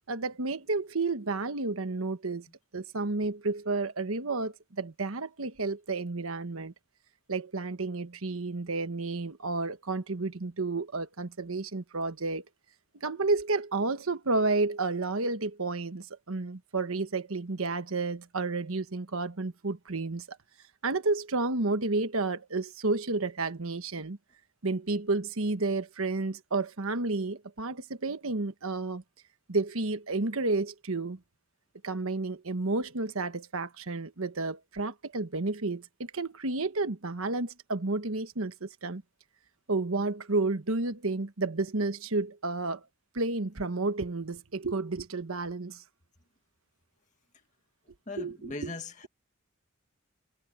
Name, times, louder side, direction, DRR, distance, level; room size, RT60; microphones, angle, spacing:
voice 1, 0.1-2.5 2.7-6.7 7.3-12.4 12.9-20.4 20.8-24.2 24.6-29.0 29.5-31.2 31.8-39.0 39.7-42.8 43.1-45.8 48.2-48.7, right 3 dB, 80° right, 1.3 m, -31 dB
voice 2, 48.1-49.1, left 2 dB, 35° left, 2.0 m, -39 dB
head